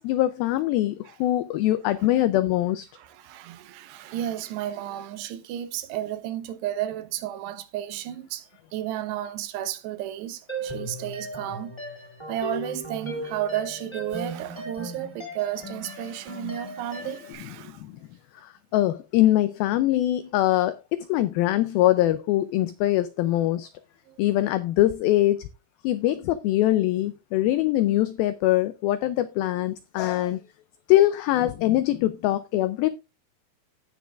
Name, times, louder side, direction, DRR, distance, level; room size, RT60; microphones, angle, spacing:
voice 1, 0.0-1.0 1.2-2.9 18.7-23.7 24.2-25.4 25.8-30.4 30.9-32.9, left 14 dB, 90° left, 2.1 m, -23 dB
voice 2, 3.0-11.7 12.3-17.8 24.1-24.2, right 12 dB, 85° right, 3.0 m, -33 dB
sound 1, 10.5-17.3, right 1 dB, 10° left, 1.6 m, -37 dB
16.5 x 6.2 x 2.4 m
omnidirectional pair, 4.8 m